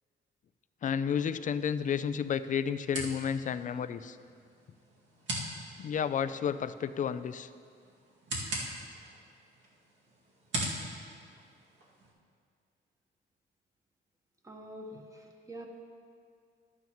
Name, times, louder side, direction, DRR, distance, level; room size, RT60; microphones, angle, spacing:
voice 1, 0.8-4.2 5.8-7.5, left 7 dB, 40° left, 13 dB, 0.4 m, -31 dB
sound 1, 1.2-12.1, right 1 dB, 70° right, 2.2 m, -42 dB
voice 2, 14.4-15.7, equal, 15° right, 1 dB, 1.3 m, -46 dB
12.0 x 9.3 x 3.1 m, 2.2 s
cardioid pair, 90°, 20 cm